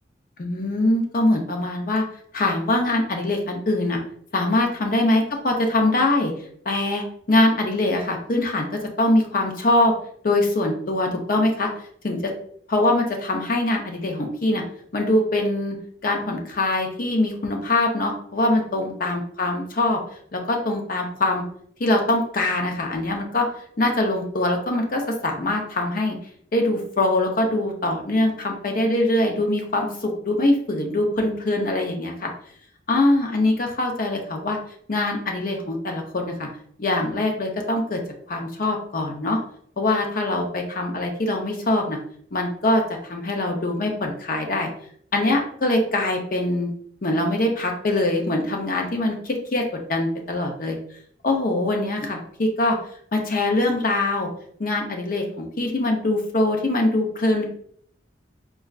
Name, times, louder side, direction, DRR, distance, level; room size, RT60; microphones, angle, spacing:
voice 1, 0.4-2.0 2.3-4.0 4.3-6.3 6.6-9.9 10.2-11.7 12.0-12.3 12.7-14.6 14.9-15.8 16.0-20.0 20.3-21.4 21.8-23.5 23.8-26.2 26.5-32.3 32.9-34.6 34.9-36.5 36.8-38.0 38.3-39.4 39.8-42.0 42.3-44.7 45.1-46.7 47.0-50.8 51.2-52.8 53.1-54.3 54.6-57.5, left 2 dB, 50° left, 2 dB, 0.6 m, -23 dB
4.1 x 2.3 x 2.4 m, 0.62 s
head